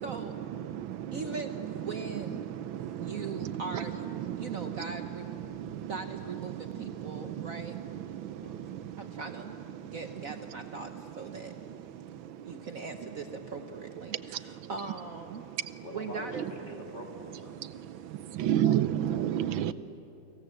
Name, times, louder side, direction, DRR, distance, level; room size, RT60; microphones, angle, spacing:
voice 1, 0.0-0.4 1.1-2.5 3.0-4.1 4.4-5.4 5.9-7.8 9.0-9.5 9.8-11.5 12.5-15.4 15.9-16.7, right 4 dB, 50° right, 1.4 m, -40 dB
voice 2, 5.4-5.9 8.4-8.9 15.8-17.6, left 1 dB, 25° left, 3.2 m, -45 dB
voice 3, 18.4-19.7, right 11 dB, 85° right, 1.6 m, -26 dB
29.5 x 25.5 x 7.8 m
omnidirectional pair, 2.1 m